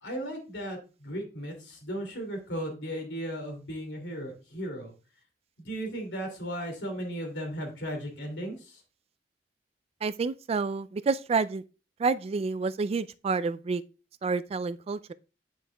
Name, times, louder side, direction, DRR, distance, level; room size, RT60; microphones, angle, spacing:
voice 1, 0.0-4.9 5.6-8.8, equal, 80° left, 2.6 m, -36 dB
voice 2, 10.0-11.6 12.0-13.8 14.2-15.1, right 4 dB, 35° right, 0.3 m, -29 dB
9.1 x 6.3 x 2.2 m
head